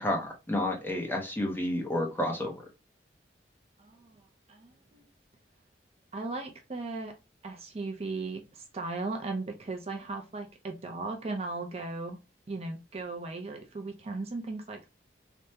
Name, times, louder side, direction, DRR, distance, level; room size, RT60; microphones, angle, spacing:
voice 1, 0.0-2.5, left 1 dB, 10° left, 1 dB, 0.6 m, -30 dB
voice 2, 3.8-4.2 4.5-5.1 6.1-7.1 7.4-12.2 12.5-14.9, right 3 dB, 35° right, 4 dB, 0.5 m, -37 dB
3.4 x 2.0 x 2.7 m, 0.26 s
head